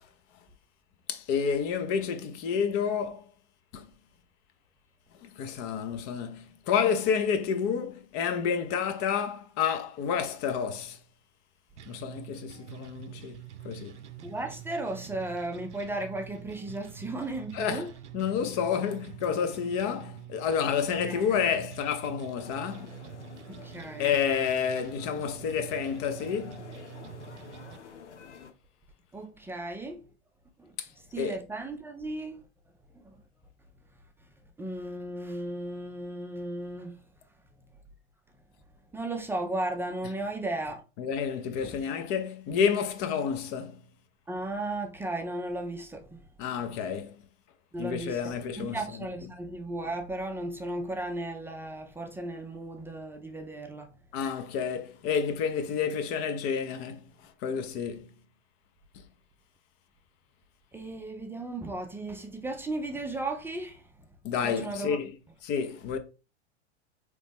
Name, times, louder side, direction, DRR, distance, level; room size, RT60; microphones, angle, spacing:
voice 1, 1.1-3.3 3.7-3.9 5.2-11.0 11.9-14.0 17.5-17.9 18.1-23.0 24.0-26.6 30.8-30.9 31.2-31.4 41.0-43.9 46.4-47.1 47.8-48.8 54.1-58.2 64.2-65.1 65.4-66.0, left 7 dB, 40° left, 0.8 m, -30 dB
sound 1, 11.8-27.8, right 10 dB, 85° right, 0.5 m, -46 dB
voice 2, 14.2-17.9 21.0-21.4 23.5-24.1 29.1-30.1 30.6-32.4 32.9-33.2 34.6-37.0 38.9-40.8 41.6-41.8 44.3-46.3 46.6-46.7 47.7-53.9 60.7-64.1 64.4-65.0, right 2 dB, 5° right, 0.5 m, -35 dB
sound 2, 22.4-28.5, left 6 dB, 80° left, 0.8 m, -49 dB
4.0 x 3.2 x 3.5 m
hypercardioid pair, 100°, 34 cm